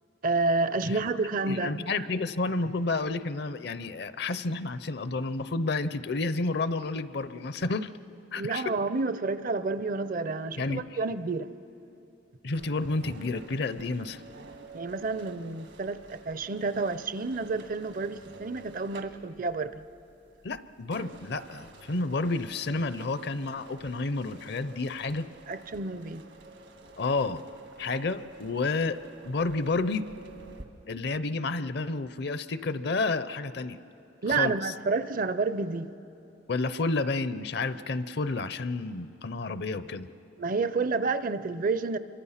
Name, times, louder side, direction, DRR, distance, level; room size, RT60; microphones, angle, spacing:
voice 1, 0.2-1.9 8.4-11.5 14.7-19.8 25.5-26.2 34.2-35.9 40.4-42.0, right 3 dB, 45° right, 13 dB, 0.6 m, -29 dB
voice 2, 1.5-7.9 8.3-8.7 10.6-10.8 12.4-14.2 20.4-25.3 27.0-27.4 27.8-30.1 30.9-33.8 34.3-34.7 36.5-40.1, left 3 dB, 60° left, 14 dB, 0.6 m, -30 dB
sound 1, 12.5-30.7, right 3 dB, 75° right, 1.6 m, -50 dB
26.5 x 24.0 x 5.7 m, 3.0 s
head